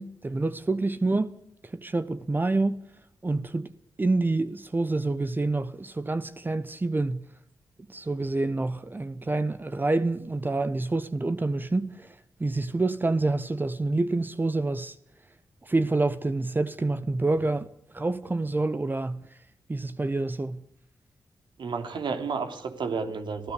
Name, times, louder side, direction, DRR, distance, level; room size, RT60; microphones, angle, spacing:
voice 1, 0.0-1.3 1.6-2.8 3.2-3.7 4.0-7.2 7.9-12.1 12.4-14.9 15.6-17.7 17.9-19.2 19.7-20.6, right 2 dB, 25° right, 1.1 m, -27 dB
voice 2, 21.6-23.5, right 5 dB, 80° right, 3.4 m, -31 dB
26.5 x 16.0 x 8.4 m
wide cardioid pair, 100°, 8 cm